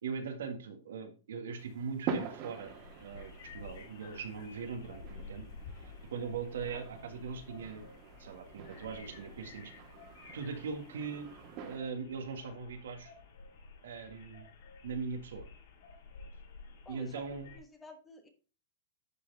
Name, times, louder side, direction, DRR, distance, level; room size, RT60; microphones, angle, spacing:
voice 1, 0.0-2.7 3.0-5.5 6.1-7.8 8.2-9.7 10.3-11.3 11.7-13.1 13.8-14.5 14.8-15.5 16.9-17.5, right 5 dB, 85° right, 5 dB, 1.7 m, -40 dB
sound 1, 1.6-11.8, right 6 dB, 35° right, 1.6 m, -45 dB
sound 2, 2.6-17.6, left 4 dB, 60° left, 3.9 m, -52 dB
voice 2, 16.8-17.2 17.5-18.3, left 2 dB, 10° left, 5 dB, 1.3 m, -51 dB
11.0 x 4.4 x 4.0 m, 0.36 s
supercardioid pair, 160°, 0 cm